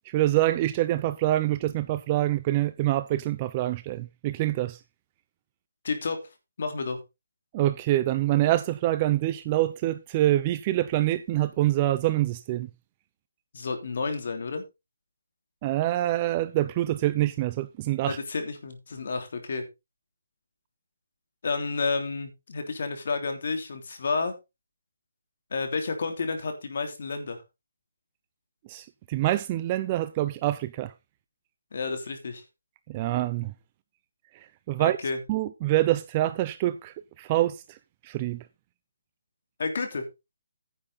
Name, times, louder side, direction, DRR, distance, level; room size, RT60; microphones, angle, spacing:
voice 1, 0.1-4.8 7.5-12.7 15.6-18.2 28.7-30.9 32.9-33.5 34.3-35.0 35.3-37.8 38.0-38.4, right 15 dB, 25° right, 0.5 m, -26 dB
voice 2, 5.8-6.2 6.6-7.0 13.5-14.6 18.1-19.6 21.4-24.3 25.5-27.4 31.7-32.4 34.8-35.2 39.6-40.0, left 4 dB, 60° left, 3.2 m, -30 dB
10.0 x 8.8 x 4.1 m
hypercardioid pair, 160°, 0 cm